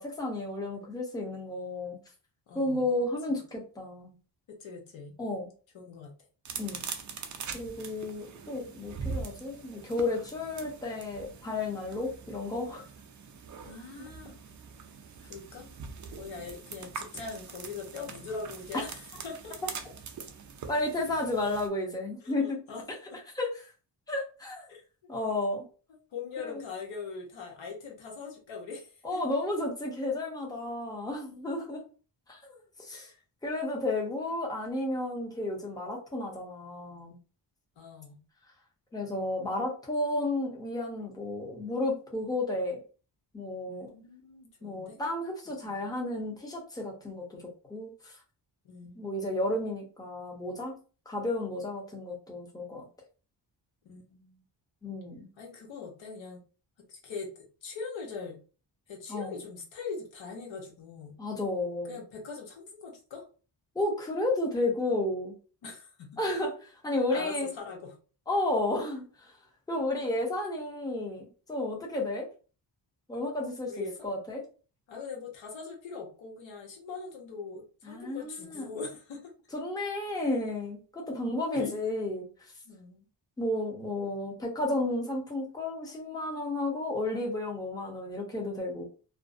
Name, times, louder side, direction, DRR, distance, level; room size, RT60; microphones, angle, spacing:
voice 1, 0.0-2.0 2.5-4.1 5.2-5.5 6.6-6.8 7.5-12.8 14.0-14.1 20.7-22.6 23.3-23.5 24.1-24.7 25.1-25.6 26.4-26.5 29.0-31.8 32.3-32.4 32.8-33.1 33.4-37.2 38.9-42.8 43.3-43.9 44.6-47.4 47.7-48.1 49.0-50.7 51.1-52.8 54.8-55.3 59.1-59.3 61.2-62.0 63.7-65.3 66.2-67.5 68.3-69.0 69.7-72.3 73.1-74.4 77.8-78.7 79.5-82.3 83.4-88.8, left 2 dB, 10° left, -1 dB, 0.7 m, -32 dB
voice 2, 2.5-2.9 3.3-3.4 4.5-5.1 5.7-6.1 13.7-14.3 15.2-15.7 16.1-19.6 22.2-22.8 23.1-23.2 24.7-24.8 26.1-29.2 32.9-33.2 37.8-38.2 43.7-45.0 45.6-45.8 48.6-49.0 53.8-54.4 55.4-56.4 56.9-57.3 57.6-58.4 58.9-61.1 61.9-63.3 65.6-66.2 67.1-68.0 73.7-74.1 74.9-79.3 81.1-81.2 81.5-81.8 82.6-83.1 84.0-84.1, left 4 dB, 80° left, 1 dB, 0.9 m, -42 dB
sound 1, 6.5-21.7, right 5 dB, 40° right, 0.4 m, -43 dB
2.5 x 2.0 x 2.4 m, 0.36 s
wide cardioid pair, 110°, 46 cm